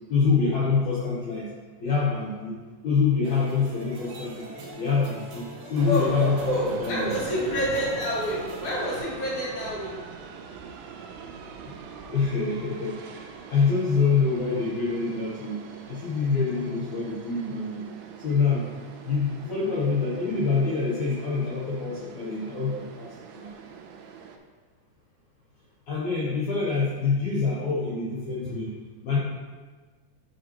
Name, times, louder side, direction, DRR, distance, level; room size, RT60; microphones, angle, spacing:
voice 1, 0.1-1.5 1.8-2.6 2.8-4.5 4.8-6.5 6.8-7.2 11.6-11.7 12.1-17.9 18.2-18.7 19.0-23.5 25.9-28.7 29.0-29.2, left 4 dB, 85° left, -6 dB, 1.6 m, -26 dB
sound 1, 3.2-9.0, right 2 dB, 65° right, 1.9 m, -43 dB
voice 2, 5.8-9.9 20.5-20.6, equal, 50° left, -6 dB, 1.6 m, -28 dB
sound 2, 5.8-24.4, right 5 dB, 85° right, 2.1 m, -42 dB
7.4 x 5.0 x 2.9 m, 1.4 s
omnidirectional pair, 4.5 m